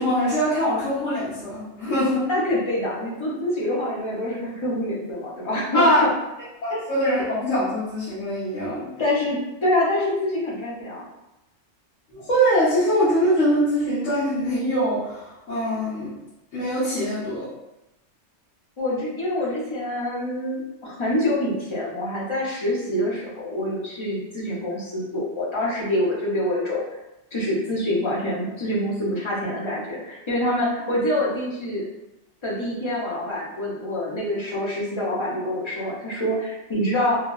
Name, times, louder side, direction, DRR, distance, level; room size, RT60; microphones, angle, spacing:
voice 1, 0.0-2.3 5.7-6.0 6.6-8.9 12.1-16.1 16.5-17.5, equal, 70° left, -11 dB, 1.2 m, -23 dB
voice 2, 2.3-6.1 6.7-6.8 9.0-11.1 18.8-26.8 27.3-31.8 32.4-37.2, left 1 dB, 35° left, -5 dB, 0.5 m, -26 dB
3.0 x 2.3 x 2.3 m, 0.95 s
omnidirectional pair, 1.3 m